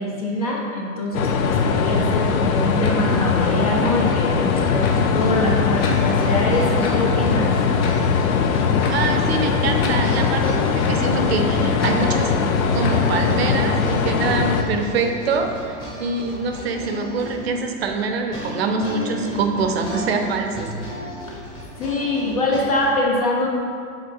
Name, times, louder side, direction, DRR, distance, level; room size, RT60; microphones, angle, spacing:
voice 1, 0.0-7.5 21.3-21.4 21.8-23.5, left 1 dB, 30° left, -2 dB, 0.4 m, -24 dB
sound 1, 1.1-14.6, left 5 dB, 85° left, 0.7 m, -20 dB
sound 2, 2.8-2.9 3.8-3.9 4.8-4.9 5.8-6.0 6.8-6.9 7.8-8.0 8.8-8.9 9.8-9.9 10.8-10.9 11.8-11.9 12.8-12.9, left 5 dB, 45° left, 0.8 m, -32 dB
sound 3, 4.8-22.9, left 1 dB, 10° left, 1.0 m, -34 dB
voice 2, 8.9-10.4 10.7-12.3 12.7-20.7, right 4 dB, 50° right, 4 dB, 0.6 m, -24 dB
7.8 x 3.8 x 3.7 m, 2.3 s
supercardioid pair, 165°, 41 cm